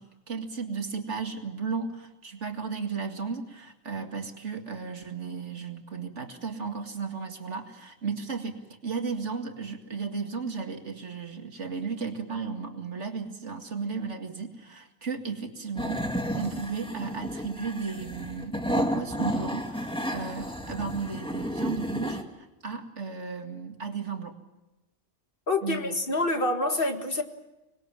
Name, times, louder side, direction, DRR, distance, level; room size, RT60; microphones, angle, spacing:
voice 1, 0.0-24.4 25.6-25.9, right 5 dB, 70° right, 2.5 m, -34 dB
sound 1, 15.7-22.2, equal, 5° left, 2.0 m, -32 dB
voice 2, 25.5-27.2, left 2 dB, 50° left, 2.0 m, -27 dB
25.5 x 21.0 x 7.4 m
omnidirectional pair, 1.3 m